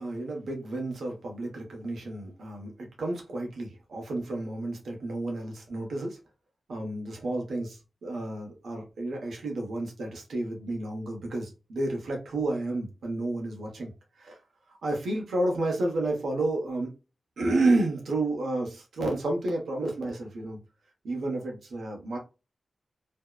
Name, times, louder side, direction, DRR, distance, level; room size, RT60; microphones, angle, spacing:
voice 1, 0.0-2.7 3.0-6.2 6.7-13.9 14.2-14.4 14.7-17.0 17.4-20.6 21.0-22.2, right 2 dB, 85° right, 1 dB, 0.9 m, -31 dB
2.6 x 2.1 x 2.3 m, 0.29 s
cardioid pair, 45°, 0 cm